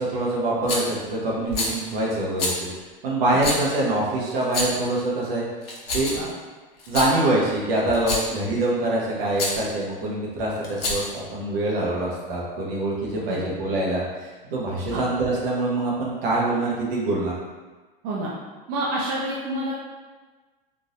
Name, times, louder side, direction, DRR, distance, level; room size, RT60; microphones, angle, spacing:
voice 1, 0.0-2.7 3.0-5.5 5.9-6.2 6.9-17.3, right 2 dB, 75° right, -4 dB, 1.1 m, -25 dB
Rattle, 0.7-0.9 1.5-1.8 2.4-2.6 3.4-3.6 4.4-4.9 5.6-6.3 6.8-7.1 7.9-8.3 9.3-9.6 10.6-11.2, left 2 dB, 90° left, 0.9 m, -27 dB
voice 2, 13.1-13.5 14.9-15.0 18.0-18.3 18.7-19.8, right 1 dB, 50° right, -5 dB, 0.8 m, -28 dB
3.8 x 2.6 x 2.6 m, 1.3 s
hypercardioid pair, 100°, 29 cm